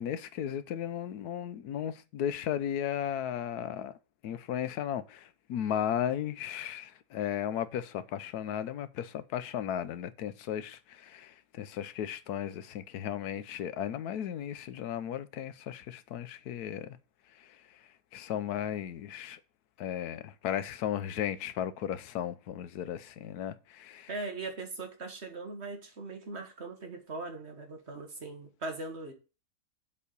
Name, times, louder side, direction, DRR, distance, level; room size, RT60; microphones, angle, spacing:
voice 1, 0.0-4.0 4.2-17.0 17.4-17.6 18.1-19.4 19.8-24.1, left 10 dB, 85° left, 1.2 m, -35 dB
voice 2, 24.1-29.1, right 3 dB, 45° right, 1.6 m, -40 dB
7.3 x 4.3 x 6.7 m
omnidirectional pair, 1.6 m